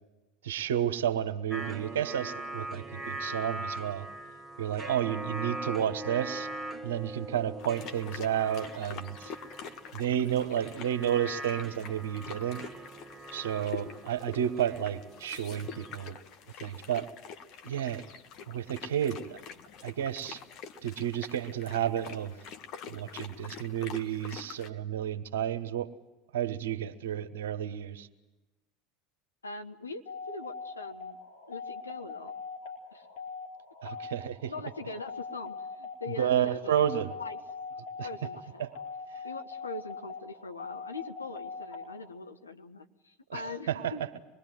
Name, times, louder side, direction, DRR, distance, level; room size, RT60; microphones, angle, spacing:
voice 1, 0.4-4.1 4.6-6.5 6.8-9.3 9.9-12.6 13.3-16.2 16.6-17.1 17.6-18.0 18.5-19.4 19.8-20.4 20.8-22.3 22.9-25.9 26.3-28.1 33.8-34.5 36.2-37.1 38.0-38.1 38.6-38.7 43.3-43.9, right 10 dB, 70° right, 10 dB, 1.2 m, -31 dB
sound 1, 1.5-16.1, right 2 dB, 15° right, 1.4 m, -41 dB
sound 2, 7.6-24.7, left 6 dB, 50° left, 1.5 m, -46 dB
voice 2, 29.4-31.2 31.5-32.3 32.9-33.1 34.5-36.9 37.2-37.4 38.0-38.6 39.2-44.2, left 3 dB, 85° left, 6 dB, 1.1 m, -42 dB
sound 3, 30.1-42.1, left 5 dB, 65° left, 4.2 m, -41 dB
25.5 x 21.5 x 7.8 m, 1.1 s
figure-of-eight pair, 75°, 0 cm